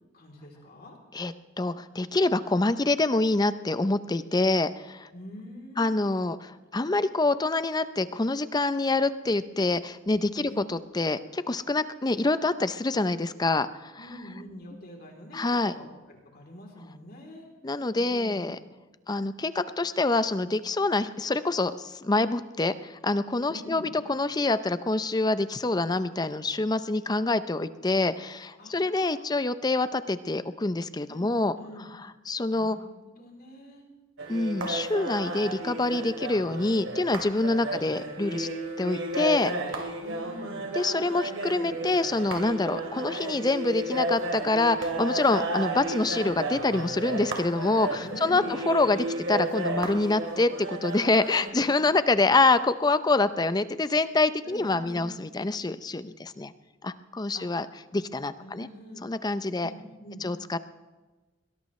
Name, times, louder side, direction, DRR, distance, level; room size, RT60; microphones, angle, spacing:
voice 1, 0.1-1.0 5.1-6.0 10.4-10.6 14.0-17.5 18.0-18.5 23.5-23.9 28.6-29.3 31.0-31.9 32.5-33.8 37.7-37.9 40.0-40.7 48.0-48.6 51.6-52.4 54.4-55.1 57.3-57.5 58.4-59.1 59.5-60.3, left 1 dB, 50° left, 1 dB, 3.2 m, -45 dB
voice 2, 1.1-5.1 5.8-13.9 15.3-15.7 17.6-18.6 19.1-31.6 32.3-32.8 34.3-38.5 38.8-39.9 40.7-56.5 56.8-57.7 57.9-58.7 59.0-59.7 60.2-60.6, left 2 dB, 20° left, 13 dB, 0.5 m, -26 dB
sound 1, 34.2-51.5, right 2 dB, 80° right, 2.5 m, -33 dB
22.0 x 17.5 x 3.2 m, 1.2 s
head